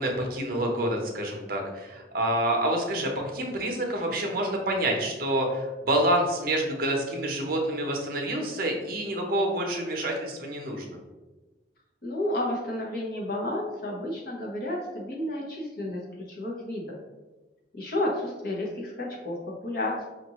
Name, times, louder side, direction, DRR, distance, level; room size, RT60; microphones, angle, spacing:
voice 1, 0.0-11.0, right 1 dB, 50° right, 1 dB, 0.7 m, -27 dB
voice 2, 12.0-16.0 16.3-16.9 17.7-19.4 19.6-20.0, left 1 dB, 55° left, -2 dB, 1.0 m, -31 dB
5.2 x 2.6 x 3.0 m, 1.2 s
head